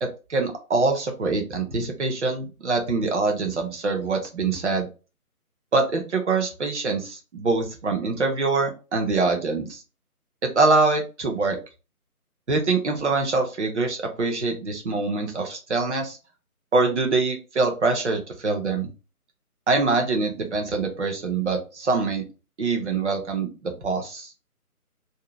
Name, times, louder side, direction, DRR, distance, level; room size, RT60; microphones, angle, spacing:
voice 1, 0.0-4.9 5.7-9.8 10.4-11.6 12.5-16.2 16.7-18.9 19.7-22.2 22.6-24.3, right 3 dB, 50° right, 3 dB, 0.9 m, -24 dB
2.7 x 2.3 x 3.4 m, 0.31 s
figure-of-eight pair, 155°, 45 cm